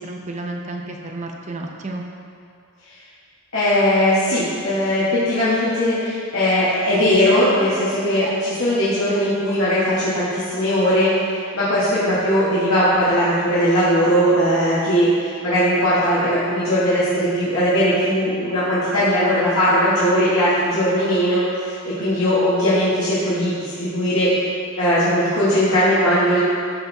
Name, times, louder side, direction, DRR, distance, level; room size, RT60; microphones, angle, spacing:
voice 1, 0.0-2.0, right 2 dB, 35° right, 2 dB, 0.6 m, -31 dB
voice 2, 3.5-11.1 11.5-24.3 24.8-26.4, equal, 80° left, -11 dB, 1.6 m, -19 dB
12.5 x 4.5 x 3.4 m, 2.3 s
head